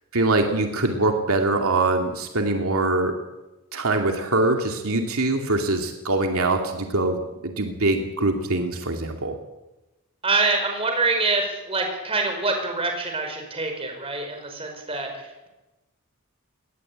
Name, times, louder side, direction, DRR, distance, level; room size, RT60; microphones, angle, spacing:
voice 1, 0.1-3.1 3.7-9.4, right 2 dB, 75° right, 3 dB, 2.4 m, -23 dB
voice 2, 10.2-15.5, right 3 dB, 25° right, 4 dB, 5.1 m, -25 dB
21.5 x 18.0 x 8.7 m, 1.0 s
head